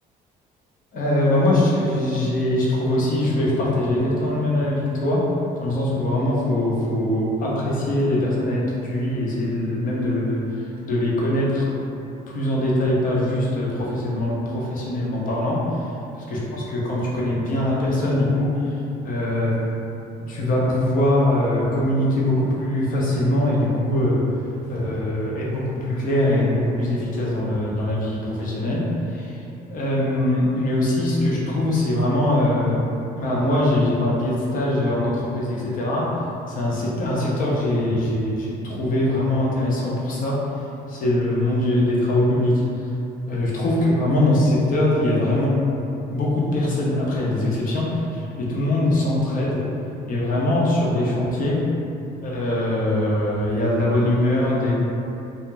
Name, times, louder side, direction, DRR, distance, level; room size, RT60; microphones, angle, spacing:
voice 1, 0.9-5.2 5.6-10.4 10.8-11.7 12.3-15.8 16.3-18.8 19.0-19.5 20.3-24.2 24.7-29.4 29.7-32.8 33.2-36.0 36.5-40.4 40.9-42.6 43.3-45.6 46.1-49.6 50.1-51.6 52.2-54.7, left 1 dB, 55° left, -5 dB, 0.7 m, -22 dB
2.5 x 2.0 x 3.2 m, 2.7 s
cardioid pair, 110°, 17 cm